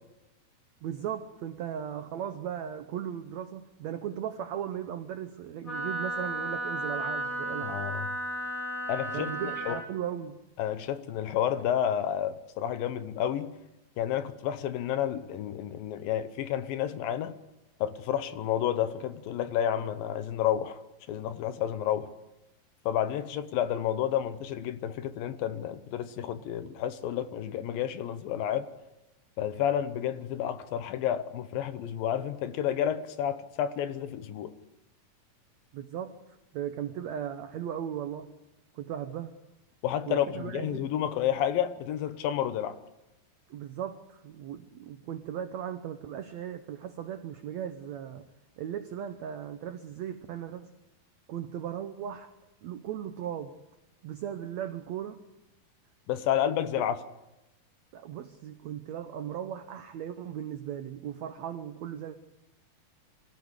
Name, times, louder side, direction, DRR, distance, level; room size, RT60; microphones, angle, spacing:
voice 1, 0.8-7.8 9.1-10.4 35.7-38.3 38.7-39.3 40.1-40.9 43.5-48.3 48.6-50.7 51.3-52.3 52.6-53.6 54.0-55.2 56.7-56.8 57.9-62.1, right 9 dB, 80° right, 1.6 m, -37 dB
Wind instrument woodwind instrument, 5.6-9.8, right 1 dB, 20° left, 4.2 m, -34 dB
voice 2, 7.6-8.1 8.9-9.8 10.6-13.6 14.0-17.4 17.8-20.8 21.1-22.1 22.9-28.7 29.4-34.5 39.8-42.8 56.1-57.0, left 10 dB, 75° left, 2.5 m, -30 dB
25.0 x 15.5 x 8.1 m
omnidirectional pair, 4.4 m